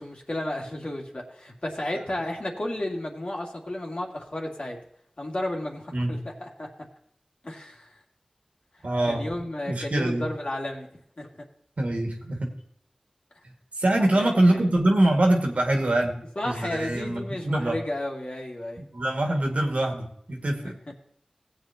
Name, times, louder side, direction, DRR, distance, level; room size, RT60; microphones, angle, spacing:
voice 1, 0.0-4.8 5.2-6.7 7.4-7.9 9.1-10.9 11.2-11.3 14.1-14.3 16.4-18.8 20.6-20.7, left 1 dB, 55° left, -1 dB, 2.4 m, -33 dB
voice 2, 8.8-9.3 9.7-10.3 11.8-12.5 13.8-17.8 18.8-20.7, right 1 dB, 80° right, 1 dB, 2.0 m, -24 dB
17.5 x 8.1 x 2.9 m, 0.69 s
wide cardioid pair, 40°, 2 cm